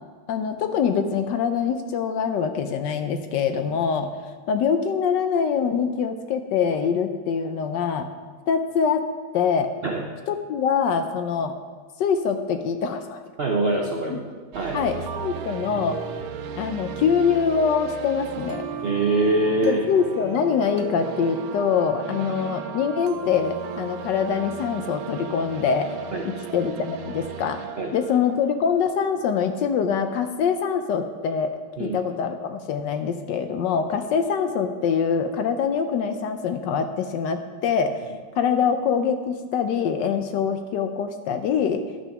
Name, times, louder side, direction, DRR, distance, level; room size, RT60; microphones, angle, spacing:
voice 1, 0.3-4.1 4.5-8.1 8.5-9.1 9.3-9.7 10.3-11.5 12.0-13.2 14.1-14.2 14.7-16.0 16.6-18.7 19.6-25.9 26.2-27.6 27.9-38.0 38.4-41.8, left 6 dB, 75° left, 8 dB, 1.1 m, -24 dB
voice 2, 13.4-14.2 14.5-14.8 18.8-19.8 22.1-22.2 26.1-26.3 27.8-27.9 31.8-32.0, right 2 dB, 65° right, 1 dB, 0.6 m, -23 dB
sound 1, 14.5-29.4, right 7 dB, 85° right, 1.5 m, -35 dB
10.5 x 6.3 x 5.8 m, 1.5 s
omnidirectional pair, 2.2 m